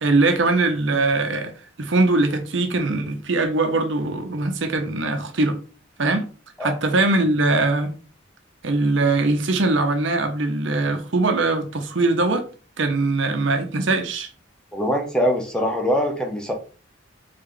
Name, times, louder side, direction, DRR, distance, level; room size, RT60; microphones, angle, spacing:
voice 1, 0.0-1.5 1.8-5.6 6.0-6.3 6.6-7.9 8.6-12.5 12.8-14.3, right 2 dB, 70° right, 0.8 m, -21 dB
voice 2, 14.7-16.5, equal, 5° left, 0.7 m, -22 dB
3.7 x 3.4 x 3.8 m
head